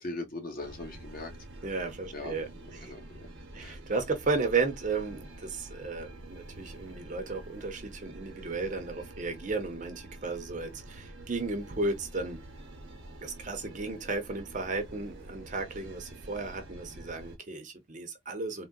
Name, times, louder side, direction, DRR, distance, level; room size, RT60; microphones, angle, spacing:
voice 1, 0.0-1.3 2.1-3.3 3.6-3.8, left 2 dB, 45° left, 1.0 m, -40 dB
sound 1, 0.6-17.4, right 1 dB, 70° right, 0.9 m, -47 dB
voice 2, 1.6-2.9 3.5-12.4 13.2-18.7, right 3 dB, 40° right, 0.7 m, -34 dB
3.6 x 2.1 x 2.2 m
head